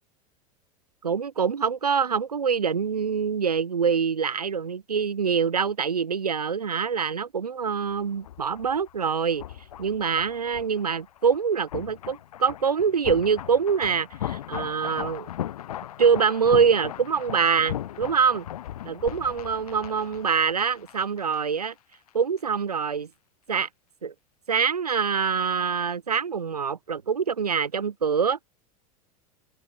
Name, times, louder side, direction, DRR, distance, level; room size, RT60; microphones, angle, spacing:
voice 1, 1.0-9.4 9.8-15.3 16.0-18.4 18.8-21.7 22.1-23.1 23.5-23.7 24.0-24.1 24.5-28.4, right 6 dB, 90° right, 1.5 m, -25 dB
sound 1, 7.9-21.7 21.9-22.1, left 12 dB, 75° left, 6.6 m, -38 dB
hypercardioid pair, 90°, 19 cm